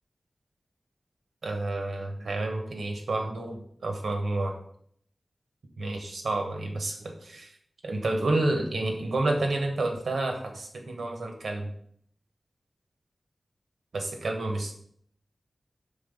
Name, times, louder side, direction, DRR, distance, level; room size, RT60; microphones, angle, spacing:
voice 1, 1.4-4.5 5.8-7.5 7.8-11.7 13.9-14.7, right 2 dB, 85° right, 3 dB, 1.2 m, -30 dB
5.6 x 4.0 x 5.4 m, 0.64 s
wide cardioid pair, 110°, 0 cm